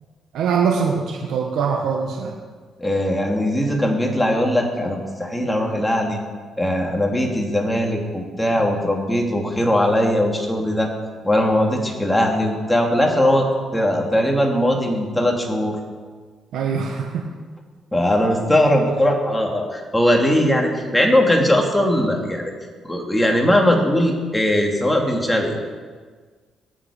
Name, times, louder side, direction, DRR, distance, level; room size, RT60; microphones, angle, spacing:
voice 1, 0.3-2.3 16.5-17.2, right 6 dB, 80° right, 1 dB, 1.4 m, -22 dB
voice 2, 2.8-6.2 6.6-10.9 11.2-13.5 13.7-15.8 17.9-22.5 22.9-25.7, left 1 dB, 10° left, 1 dB, 2.6 m, -19 dB
19.0 x 7.8 x 5.1 m, 1.5 s
cardioid pair, 90°, 0 cm